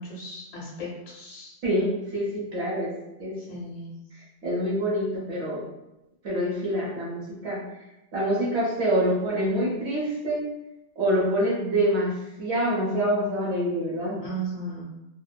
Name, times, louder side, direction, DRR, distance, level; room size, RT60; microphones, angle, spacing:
voice 1, 0.0-1.5 3.4-3.9 14.2-14.8, right 2 dB, 65° left, -5 dB, 1.6 m, -36 dB
voice 2, 1.6-2.9 3.2-3.4 4.4-5.6 6.2-7.6 8.1-10.4 11.0-12.1 12.4-14.2, equal, 50° right, -7 dB, 0.9 m, -26 dB
3.5 x 2.0 x 2.2 m, 0.93 s
omnidirectional pair, 2.1 m